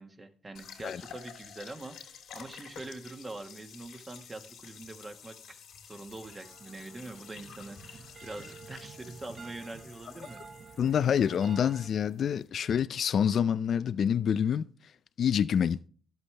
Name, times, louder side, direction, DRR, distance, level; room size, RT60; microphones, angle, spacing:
voice 1, 0.0-5.6 5.8-10.4, right 2 dB, 25° right, 1.4 m, -44 dB
sound 1, 0.5-12.5, left 8 dB, 80° left, 2.8 m, -51 dB
sound 2, 6.0-11.9, right 5 dB, 45° right, 0.9 m, -50 dB
voice 2, 10.8-14.7 15.2-15.9, left 8 dB, 60° left, 0.4 m, -27 dB
12.0 x 8.1 x 3.3 m
cardioid pair, 90°, 0 cm